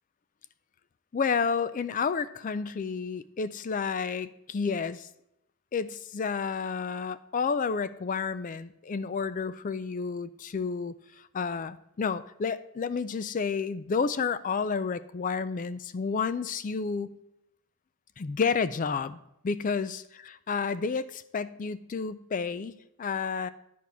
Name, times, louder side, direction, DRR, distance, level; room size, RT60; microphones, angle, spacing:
voice 1, 1.1-5.1 5.7-17.2 18.2-19.2 19.4-23.5, left 5 dB, 40° left, 14 dB, 0.4 m, -31 dB
10.5 x 4.6 x 6.8 m, 0.81 s
head